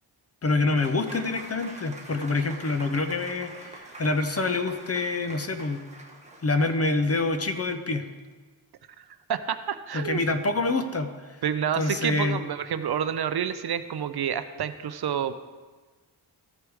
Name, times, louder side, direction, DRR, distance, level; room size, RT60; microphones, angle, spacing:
voice 1, 0.4-5.8 6.4-8.1 9.9-11.1 11.7-12.4, left 3 dB, 35° left, 7 dB, 0.7 m, -26 dB
Applause / Crowd, 0.7-7.5, right 2 dB, 15° right, 1.3 m, -45 dB
voice 2, 9.3-10.2 11.4-15.3, right 8 dB, 60° right, 11 dB, 0.5 m, -29 dB
14.0 x 4.8 x 4.7 m, 1.4 s
wide cardioid pair, 105°, 44 cm